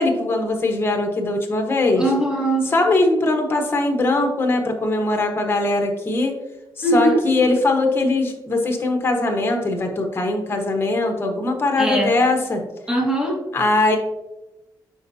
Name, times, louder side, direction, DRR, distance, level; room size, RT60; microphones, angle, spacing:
voice 1, 0.0-2.0 2.6-6.3 6.8-12.6 13.5-14.0, left 2 dB, 30° left, 3 dB, 1.3 m, -21 dB
voice 2, 2.0-2.7 6.8-7.2 11.8-12.1 12.9-13.4, right 1 dB, 10° right, -1 dB, 1.7 m, -20 dB
8.9 x 5.5 x 2.8 m, 0.98 s
wide cardioid pair, 135°, 8 cm